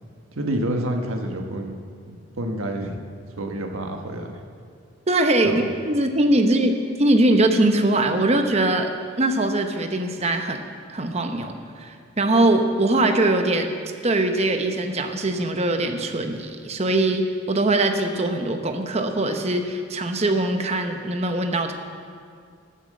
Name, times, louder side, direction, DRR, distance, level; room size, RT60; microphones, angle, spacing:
voice 1, 0.3-1.8 2.0-3.0 3.4-4.4 5.4-5.6, right 1 dB, 85° right, 3 dB, 1.4 m, -28 dB
voice 2, 5.1-8.9 9.2-13.7 14.0-21.7, right 2 dB, 30° right, 5 dB, 0.8 m, -22 dB
13.0 x 7.2 x 7.7 m, 2.2 s
head